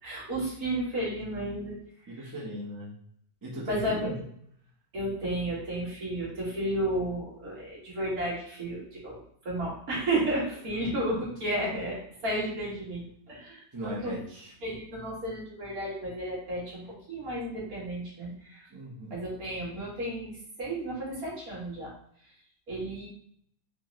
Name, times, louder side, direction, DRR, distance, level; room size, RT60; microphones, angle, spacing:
voice 1, 0.0-2.3 3.7-4.1 4.9-12.0 12.2-14.2 14.6-18.7 19.1-21.9 22.2-22.3 22.7-23.1, right 1 dB, 65° right, -5 dB, 2.0 m, -33 dB
voice 2, 2.1-2.9 3.4-4.2 10.8-10.9 13.7-14.5 18.7-19.2, right 1 dB, 15° right, -5 dB, 0.8 m, -38 dB
4.8 x 2.5 x 3.1 m, 0.67 s
omnidirectional pair, 1.6 m